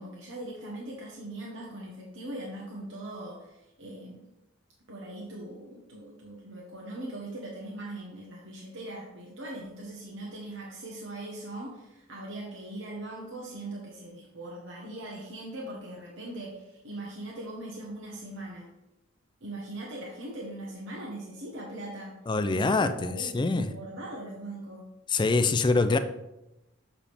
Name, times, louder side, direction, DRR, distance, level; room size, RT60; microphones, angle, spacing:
voice 1, 0.0-4.3 4.9-18.7 19.4-22.2 22.5-24.8, right 1 dB, 75° right, -3 dB, 1.1 m, -40 dB
voice 2, 22.3-23.7 25.1-26.0, left 3 dB, 25° left, 10 dB, 0.4 m, -25 dB
7.0 x 4.8 x 3.5 m, 0.93 s
head